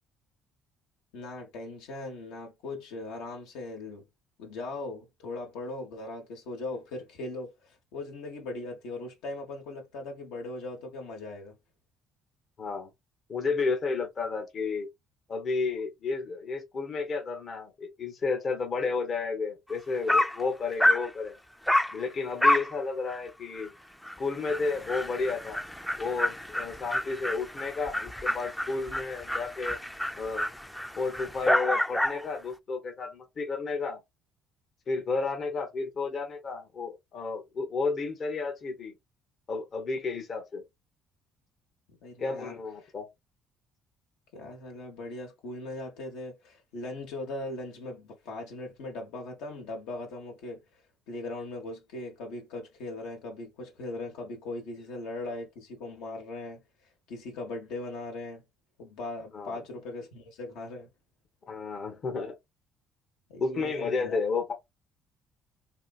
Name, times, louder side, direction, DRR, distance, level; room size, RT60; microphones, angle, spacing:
voice 1, 1.1-4.1 4.4-11.6 42.0-42.9 44.3-50.6 51.1-56.6 57.1-58.4 58.8-60.9 63.3-64.2, left 2 dB, 75° left, 1.0 m, -39 dB
voice 2, 12.6-12.9 13.3-14.9 15.3-21.4 21.9-23.7 24.2-25.6 26.0-29.8 30.1-30.5 31.0-34.0 34.9-38.9 39.5-40.6 42.2-43.1 59.3-59.6 61.5-62.3 63.4-64.5, left 4 dB, 50° left, 0.9 m, -32 dB
Dog, 19.7-19.8 20.1-20.4 20.8-21.1 21.7-22.0 22.4-22.7 23.1-23.2 23.6-23.7 24.0-24.1 24.4-32.3, left 1 dB, 5° left, 0.4 m, -28 dB
2.8 x 2.5 x 2.3 m
hypercardioid pair, 60°, 0 cm